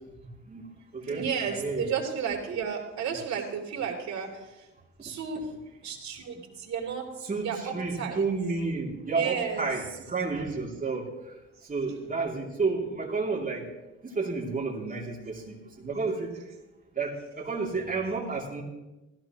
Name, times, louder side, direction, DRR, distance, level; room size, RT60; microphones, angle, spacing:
voice 1, 0.2-1.9 5.0-5.1 7.2-11.3 11.7-13.7 14.0-16.3 16.9-18.6, right 4 dB, 25° right, -2 dB, 3.0 m, -31 dB
voice 2, 1.0-4.7 5.0-5.5 5.8-8.3 9.0-9.7, right 7 dB, 65° right, 0 dB, 3.3 m, -33 dB
16.0 x 14.5 x 3.1 m, 1.0 s
cardioid pair, 90°, 30 cm